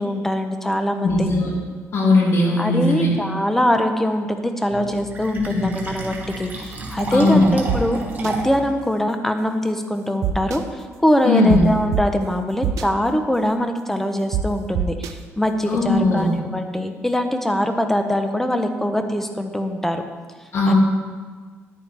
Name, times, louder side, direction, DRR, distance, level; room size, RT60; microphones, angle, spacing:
voice 1, 0.0-1.3 2.6-20.0 20.7-20.8, equal, 5° left, 6 dB, 0.8 m, -22 dB
voice 2, 1.0-1.5 1.9-3.1 5.3-5.8 7.1-7.5 11.2-11.7 15.7-16.3 20.5-20.7, left 2 dB, 60° left, -3 dB, 2.6 m, -18 dB
Fill (with liquid), 4.7-8.7, right 2 dB, 35° right, 1.7 m, -31 dB
sound 1, 7.7-7.8 8.2-8.3 10.2-10.6 11.5-11.6 11.9-12.0 12.6-12.8 14.3-14.4 14.7-15.1, right 11 dB, 85° right, 0.6 m, -22 dB
10.5 x 8.9 x 3.5 m, 1.5 s
cardioid pair, 105°, 5 cm